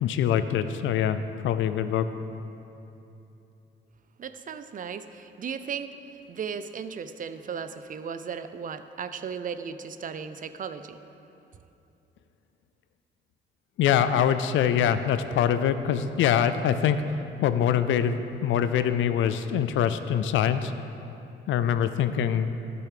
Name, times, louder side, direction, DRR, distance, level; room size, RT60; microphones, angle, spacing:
voice 1, 0.0-2.1 13.8-20.7 21.5-22.5, left 9 dB, 75° left, 11 dB, 0.5 m, -24 dB
voice 2, 4.2-6.0 6.3-11.0, right 6 dB, 45° right, 10 dB, 0.5 m, -36 dB
11.5 x 7.0 x 5.0 m, 2.8 s
cardioid pair, 90°, 20 cm